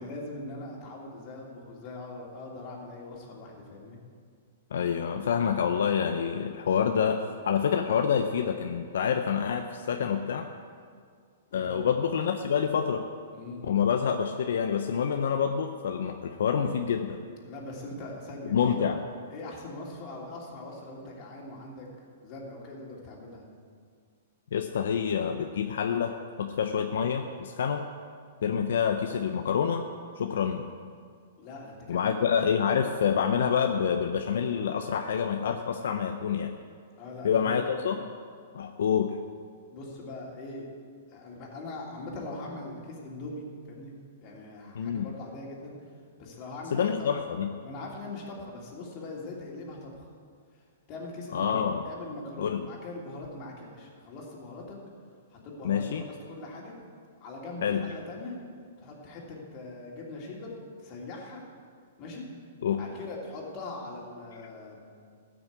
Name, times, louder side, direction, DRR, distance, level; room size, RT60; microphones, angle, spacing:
voice 1, 0.0-4.0 11.5-11.9 13.3-13.7 17.4-18.7 19.3-21.9 22.2-23.4 31.4-32.0 37.0-37.6 39.7-40.7 41.1-44.0 44.2-45.7 46.2-47.1 47.6-50.1 50.9-54.8 55.3-56.7 57.2-58.4 58.8-60.5 60.8-61.4 62.0-62.3 62.8-64.8, left 2 dB, 35° left, -2 dB, 2.9 m, -41 dB
voice 2, 4.7-10.5 11.5-13.1 13.6-17.2 18.5-19.0 24.5-27.8 28.4-29.8 30.2-30.7 31.9-36.5 37.2-38.0 38.5-39.1 44.7-45.1 46.7-47.5 51.3-51.8 52.4-52.7 55.6-56.0 57.6-57.9 62.6-62.8, left 7 dB, 75° left, 5 dB, 0.7 m, -27 dB
13.5 x 6.3 x 8.2 m, 2.1 s
hypercardioid pair, 145°, 0 cm